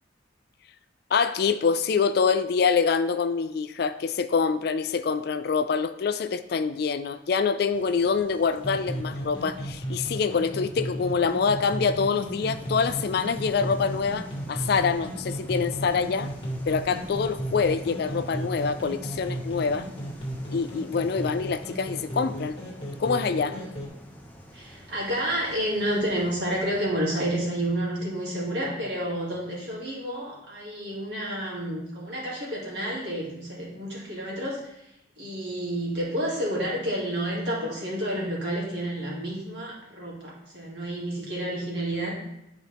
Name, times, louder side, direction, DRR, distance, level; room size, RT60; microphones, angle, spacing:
voice 1, 1.1-16.3 16.6-19.9 20.5-22.6 23.0-23.6, left 5 dB, 55° left, 12 dB, 0.3 m, -25 dB
sound 1, 7.7-26.8, equal, 10° left, 0.8 m, -48 dB
sound 2, 8.6-23.9, right 1 dB, 30° left, 2.0 m, -35 dB
voice 2, 24.5-34.8 35.2-42.2, right 1 dB, 60° right, -5 dB, 2.4 m, -30 dB
10.0 x 4.2 x 3.5 m, 0.87 s
head